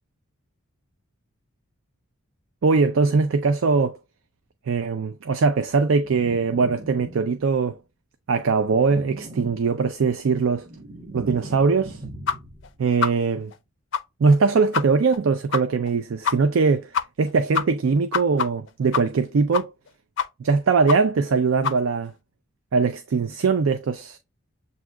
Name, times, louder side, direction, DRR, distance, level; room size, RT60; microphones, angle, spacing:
voice 1, 2.6-4.0 4.7-7.8 8.3-10.7 11.1-12.0 12.8-13.5 14.2-16.9 17.2-19.7 20.4-22.1 22.7-24.2, right 4 dB, 65° right, 0.4 m, -21 dB
sound 1, 6.0-7.6 8.5-10.0 10.4-12.8, right 1 dB, 20° right, 1.4 m, -40 dB
sound 2, 12.3-12.4 12.6-12.7 13.0-13.1 13.5-13.6 13.9-14.0 14.3-14.4 14.7-14.8 15.1-15.2 15.5-15.6 15.9-16.0 16.2-16.3 16.6-16.7 16.9-17.3 17.5-19.3 19.5-19.9 20.2-20.5 20.9-21.0 21.2-21.3 21.6-21.8, left 6 dB, 55° left, 0.4 m, -25 dB
7.2 x 2.7 x 2.2 m
head